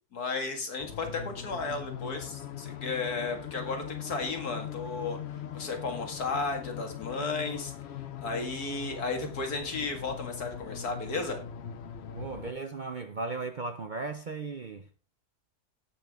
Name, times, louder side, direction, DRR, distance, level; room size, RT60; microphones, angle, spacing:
voice 1, 0.1-5.2 5.5-7.7 8.2-11.4, left 3 dB, 85° left, 2.4 m, -34 dB
sound 1, 0.8-12.5, left 9 dB, 55° left, 0.8 m, -41 dB
voice 2, 12.1-14.9, right 3 dB, 50° right, 0.6 m, -36 dB
17.5 x 5.9 x 3.5 m
omnidirectional pair, 1.6 m